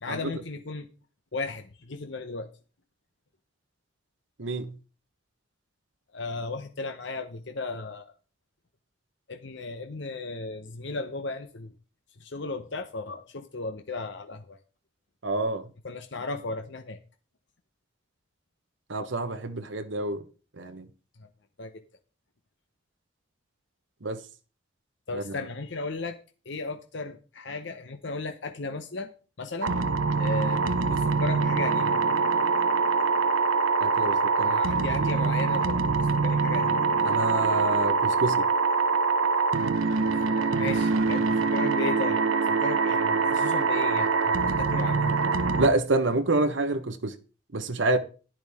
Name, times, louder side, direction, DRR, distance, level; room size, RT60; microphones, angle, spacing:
voice 1, 0.0-0.9 1.3-2.5 6.1-8.1 9.3-11.7 12.2-14.6 15.8-17.0 21.2-21.3 21.6-21.7 25.1-26.2 26.4-29.1 29.4-29.8 30.2-32.0 34.4-36.8 40.1-42.2 42.5-45.2 47.9-48.0, left 3 dB, 60° left, 0.9 m, -35 dB
voice 2, 4.4-4.8 15.2-15.7 18.9-20.2 20.6-20.9 24.0-24.2 25.1-25.3 33.8-35.3 37.0-38.5 45.6-47.2 47.5-48.0, right 2 dB, 65° right, 1.1 m, -28 dB
sound 1, 29.6-45.7, right 4 dB, 90° right, 1.0 m, -24 dB
11.0 x 10.5 x 3.6 m
head